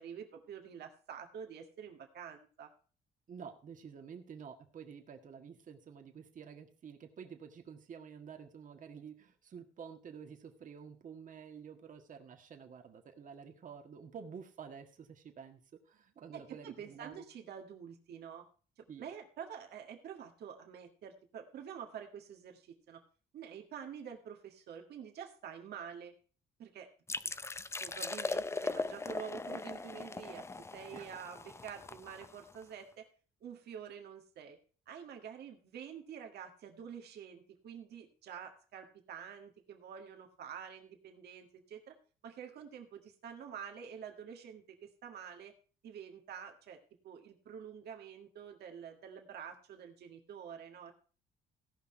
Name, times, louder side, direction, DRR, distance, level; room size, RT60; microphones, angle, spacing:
voice 1, 0.0-2.7 16.3-18.4 18.8-23.0 23.3-26.1 26.6-26.9 27.8-33.1 33.4-34.6 34.9-42.0 42.2-45.5 45.8-46.8 47.0-50.9, right 8 dB, 70° right, 3 dB, 1.8 m, -48 dB
voice 2, 3.3-15.6 15.9-17.2 18.9-19.0 30.9-31.1, right 7 dB, 50° right, 5 dB, 1.7 m, -50 dB
sound 1, 27.1-32.6, left 3 dB, 15° left, 0.5 m, -39 dB
16.5 x 5.8 x 4.4 m, 0.39 s
cardioid pair, 115°, 17 cm